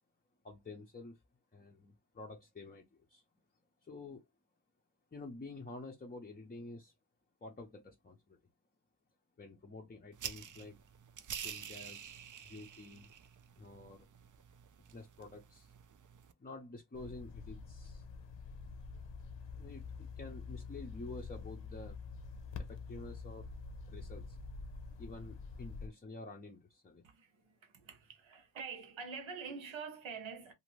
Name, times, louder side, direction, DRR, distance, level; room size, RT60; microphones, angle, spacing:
voice 1, 0.4-1.2 1.5-3.2 3.8-4.2 5.1-6.9 7.4-8.4 9.4-10.8 11.4-12.0 12.4-13.1 13.6-14.1 14.9-15.7 16.4-18.1 19.6-22.0 22.6-23.5 23.9-24.4 25.0-27.0, left 2 dB, 20° left, 0.5 m, -49 dB
sound 1, 10.1-16.3, right 8 dB, 45° right, 0.4 m, -48 dB
sound 2, 16.9-25.9, left 4 dB, 70° left, 0.7 m, -46 dB
voice 2, 27.0-30.5, right 5 dB, 80° right, 0.9 m, -46 dB
2.5 x 2.5 x 3.0 m
wide cardioid pair, 115°, 46 cm